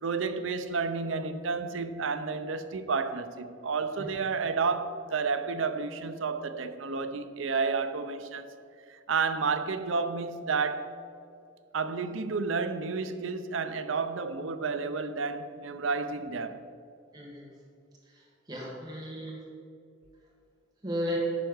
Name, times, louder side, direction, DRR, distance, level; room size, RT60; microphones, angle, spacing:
voice 1, 0.0-8.5 8.9-11.0 11.7-16.6, right 4 dB, 80° right, 0.6 m, -31 dB
voice 2, 17.1-17.5 18.1-19.4 20.8-21.2, left 1 dB, 20° right, 1.8 m, -35 dB
9.9 x 4.6 x 6.3 m
head